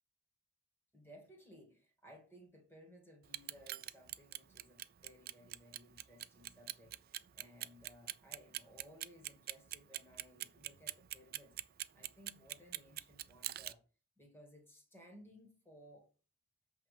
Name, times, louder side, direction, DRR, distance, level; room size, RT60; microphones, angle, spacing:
voice 1, 0.9-11.5 11.9-13.8 14.2-16.1, equal, 10° left, 2.2 m, -60 dB
Clock, 3.2-13.7, right 15 dB, 45° right, 0.4 m, -43 dB
7.9 x 3.7 x 6.7 m
head